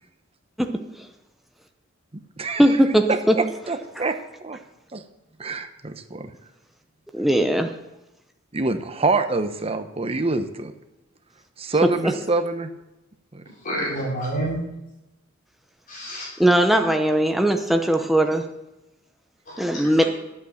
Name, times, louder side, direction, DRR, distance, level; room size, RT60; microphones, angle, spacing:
voice 1, 0.6-1.1 2.6-3.4 4.0-4.1 7.1-7.7 16.4-18.4 19.6-20.0, right 1 dB, ahead, 4 dB, 0.7 m, -19 dB
voice 2, 2.4-4.6 4.9-5.0 5.4-6.3 8.5-10.7 11.6-12.7 13.3-13.4, right 3 dB, 30° right, 8 dB, 0.9 m, -26 dB
voice 3, 13.6-14.6 15.9-16.3 19.5-20.1, right 1 dB, 45° left, -5 dB, 4.7 m, -29 dB
11.0 x 8.4 x 6.5 m, 0.95 s
head